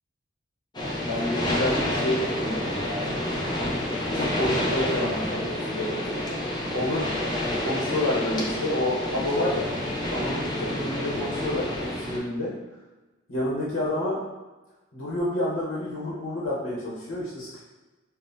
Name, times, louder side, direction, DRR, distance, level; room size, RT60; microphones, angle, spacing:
sound 1, 0.7-12.2, left 1 dB, 20° left, 0.5 m, -29 dB
voice 1, 1.0-3.0 3.9-6.0 6.7-7.1 7.6-9.7 10.1-12.5 13.3-14.2 14.9-17.6, left 1 dB, 70° left, -6 dB, 1.0 m, -29 dB
5.6 x 2.1 x 2.6 m, 1.1 s
head